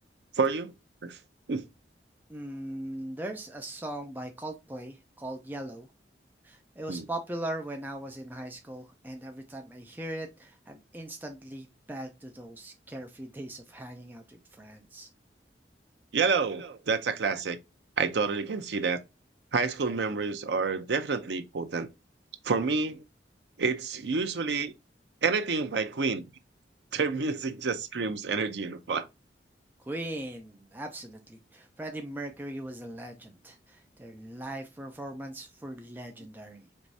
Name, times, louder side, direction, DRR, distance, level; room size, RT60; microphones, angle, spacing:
voice 1, 0.3-0.7 1.0-1.2 1.5-1.6 6.9-7.1 16.1-17.6 18.0-19.0 19.5-21.9 22.4-23.0 23.6-24.7 25.2-26.3 26.9-29.1, right 4 dB, 75° right, 0.6 m, -29 dB
voice 2, 2.3-5.9 6.4-15.1 29.8-36.9, right 1 dB, 10° right, 0.5 m, -40 dB
4.6 x 3.1 x 2.6 m
head